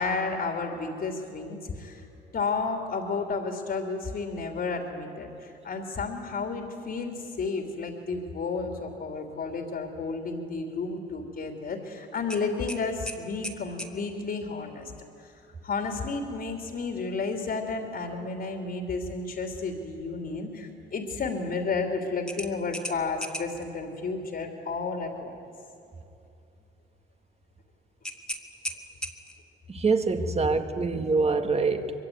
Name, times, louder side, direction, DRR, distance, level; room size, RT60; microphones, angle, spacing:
voice 1, 0.0-2.1 2.3-14.9 15.2-15.3 15.6-25.3, left 4 dB, 55° left, 3 dB, 3.2 m, -32 dB
sound 1, 12.3-14.0 16.6-16.8 17.2-17.3 22.3-23.7 28.0-29.5, equal, 5° left, 2.2 m, -37 dB
voice 2, 29.7-31.9, right 4 dB, 30° right, 7 dB, 2.0 m, -25 dB
24.0 x 23.0 x 9.5 m, 2.6 s
cardioid pair, 90°, 20 cm